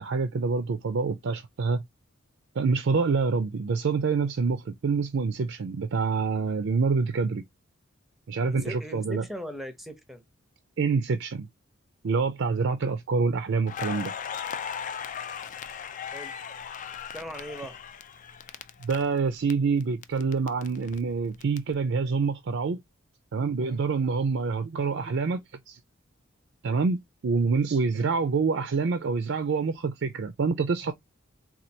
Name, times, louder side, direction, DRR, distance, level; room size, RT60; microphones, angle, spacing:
voice 1, 0.0-1.8 2.6-7.4 8.3-9.2 10.8-11.5 12.0-14.1 18.8-22.8 23.3-25.4 25.7-25.8 26.6-27.0 27.2-30.9, right 4 dB, 65° right, 0.4 m, -26 dB
voice 2, 8.4-10.2 16.1-16.4 17.1-17.8, equal, ahead, 0.7 m, -39 dB
Crackle, 13.7-19.5 19.8-21.6, left 7 dB, 40° left, 0.4 m, -37 dB
4.3 x 2.3 x 2.7 m
head